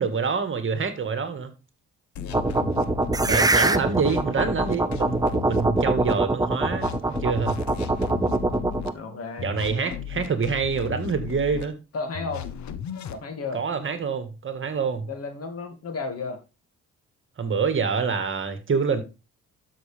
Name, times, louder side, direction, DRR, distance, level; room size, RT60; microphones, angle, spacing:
voice 1, 0.0-1.5 3.3-6.9 7.2-7.6 9.4-11.8 13.5-15.1 17.4-19.0, right 5 dB, 40° right, 1.8 m, -26 dB
sound 1, 2.2-3.4 3.9-6.1 6.6-8.9 9.4-11.7 12.1-13.2, left 8 dB, 70° left, 1.0 m, -35 dB
voice 2, 2.2-2.9 3.2-3.9 7.9-10.5 11.9-12.4 13.1-13.6 15.1-16.4, left 4 dB, 50° left, 2.4 m, -35 dB
sound 2, 2.3-8.9, right 2 dB, 10° right, 0.6 m, -23 dB
12.5 x 6.2 x 3.5 m
cardioid pair, 90°, 30 cm